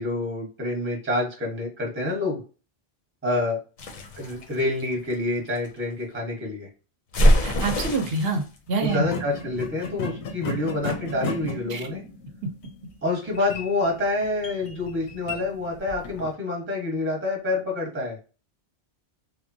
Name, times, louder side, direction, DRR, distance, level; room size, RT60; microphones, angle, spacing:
voice 1, 0.0-2.4 3.2-3.6 4.2-6.7 8.8-12.0 13.0-18.2, left 2 dB, 10° right, 0 dB, 0.8 m, -27 dB
sound 1, 3.8-5.7 7.1-8.4, equal, 55° left, 0.6 m, -23 dB
voice 2, 7.4-9.1 11.7-11.8, right 3 dB, 70° right, 6 dB, 0.8 m, -26 dB
sound 2, 7.8-8.0 8.8-16.3, left 4 dB, 90° left, 0.9 m, -35 dB
3.2 x 2.1 x 2.5 m, 0.35 s
omnidirectional pair, 1.1 m